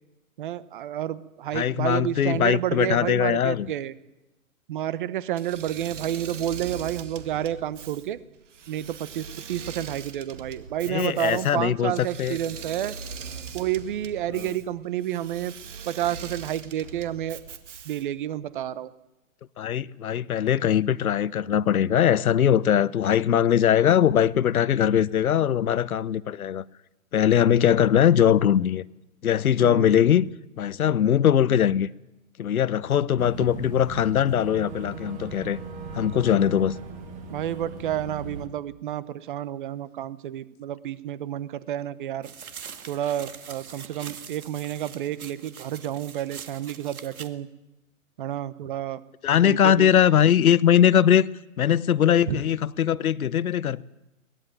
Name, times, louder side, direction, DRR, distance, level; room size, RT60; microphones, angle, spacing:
voice 1, 0.4-3.9 4.7-8.2 8.7-12.9 13.5-15.5 15.9-17.4 17.8-18.9 29.6-30.0 37.3-42.3 42.9-47.5 48.2-49.0 49.4-49.9 52.3-52.4, right 12 dB, 35° right, 1.0 m, -30 dB
voice 2, 1.5-3.7 10.9-12.4 14.3-14.5 19.6-26.6 27.1-28.8 29.2-30.2 30.6-31.9 32.4-35.6 35.9-36.8 49.2-51.3 51.6-53.8, left 9 dB, 80° left, 1.0 m, -21 dB
Engine / Mechanisms, 5.3-18.2, right 6 dB, 55° right, 2.2 m, -41 dB
Boat Water vehicle / Engine, 33.2-38.5, right 4 dB, 15° right, 1.6 m, -39 dB
sound 1, 42.2-47.3, right 7 dB, 80° right, 2.1 m, -43 dB
23.0 x 19.0 x 9.1 m
hypercardioid pair, 155°, 42 cm